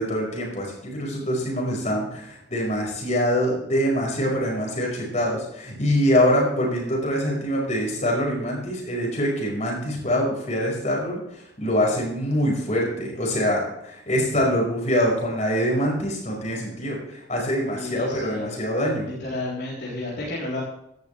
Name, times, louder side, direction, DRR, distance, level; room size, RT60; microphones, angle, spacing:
voice 1, 0.0-19.1, equal, 35° left, -1 dB, 5.2 m, -24 dB
voice 2, 17.8-18.5 19.0-20.6, left 2 dB, 60° left, -7 dB, 3.7 m, -32 dB
15.0 x 12.0 x 3.4 m, 0.79 s
head